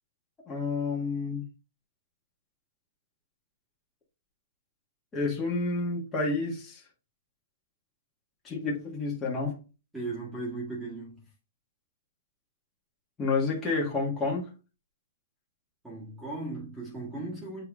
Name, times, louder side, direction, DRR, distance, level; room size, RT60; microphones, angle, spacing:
voice 1, 0.5-1.4 5.1-6.8 8.4-9.6 13.2-14.5, left 3 dB, 15° left, 1.9 m, -29 dB
voice 2, 9.9-11.3 15.8-17.6, right 2 dB, 5° right, 1.9 m, -37 dB
7.6 x 3.4 x 3.7 m
hypercardioid pair, 150°, 0 cm